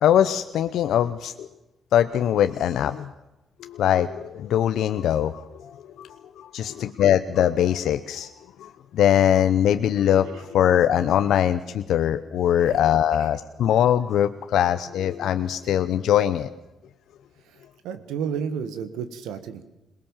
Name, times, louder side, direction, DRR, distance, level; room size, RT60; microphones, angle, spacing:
voice 1, 0.0-1.5 1.9-3.1 3.6-6.1 6.4-8.3 8.6-16.5, left 10 dB, 75° left, 10 dB, 0.8 m, -22 dB
voice 2, 17.8-19.6, right 7 dB, 90° right, 11 dB, 1.7 m, -31 dB
21.5 x 19.5 x 7.4 m, 0.99 s
cardioid pair, 70°, 0 cm